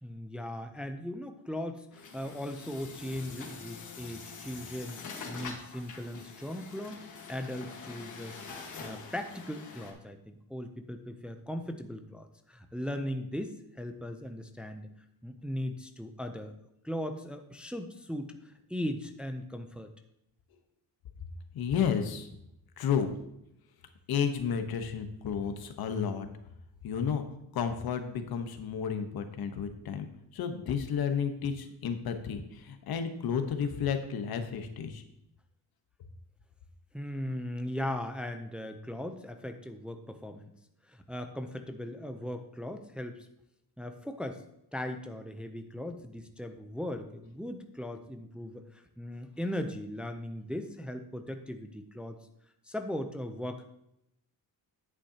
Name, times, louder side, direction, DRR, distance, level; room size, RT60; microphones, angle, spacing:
voice 1, 0.0-8.3 8.8-10.2 10.5-14.9 15.2-16.5 16.8-19.9 36.9-40.5 40.9-43.3 43.8-44.4 44.7-52.2 52.6-53.6, left 1 dB, 5° right, 6 dB, 0.5 m, -38 dB
Truck, 1.9-9.9, left 5 dB, 50° left, 1.5 m, -45 dB
voice 2, 21.5-22.3 22.8-23.1 24.1-26.3 26.8-27.2 27.5-30.1 30.3-35.0, left 7 dB, 75° left, 7 dB, 1.1 m, -32 dB
9.9 x 8.5 x 2.8 m, 0.79 s
cardioid pair, 140°, 37 cm